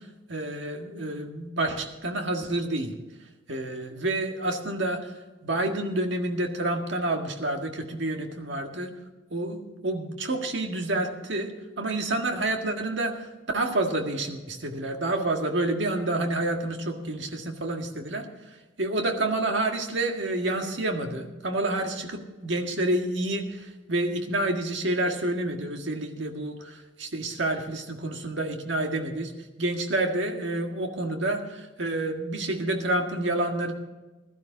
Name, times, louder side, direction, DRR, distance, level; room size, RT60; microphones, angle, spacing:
voice 1, 0.3-2.9 3.5-5.1 5.4-8.9 9.3-11.5 11.8-13.3 13.5-18.3 18.8-29.3 29.6-33.7, right 2 dB, 65° right, 3 dB, 1.8 m, -28 dB
16.5 x 12.5 x 4.0 m, 1.2 s
head